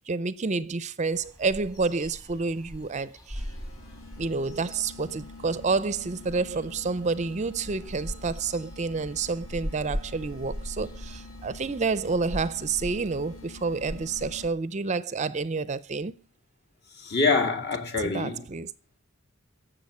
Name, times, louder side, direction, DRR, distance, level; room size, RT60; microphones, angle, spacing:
voice 1, 0.1-3.5 4.2-16.3 18.0-18.7, right 4 dB, 35° right, 0.5 m, -29 dB
sound 1, 1.1-14.5, equal, 15° left, 1.6 m, -41 dB
sound 2, 3.4-14.8, left 2 dB, 70° left, 1.6 m, -46 dB
voice 2, 16.9-18.5, left 4 dB, 50° left, 2.3 m, -25 dB
11.0 x 7.6 x 9.5 m
head